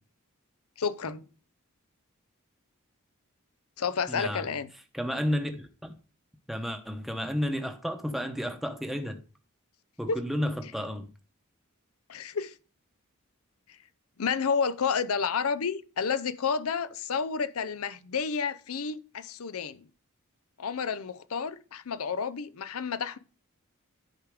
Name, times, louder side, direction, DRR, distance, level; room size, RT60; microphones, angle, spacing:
voice 1, 0.8-1.2 3.8-4.7 10.1-10.2 12.1-12.5 14.2-19.9 20.6-23.2, left 6 dB, 85° left, 0.6 m, -30 dB
voice 2, 4.1-4.4 4.9-5.9 6.5-9.2 10.0-11.1, equal, ahead, 0.9 m, -32 dB
10.5 x 4.9 x 4.8 m
head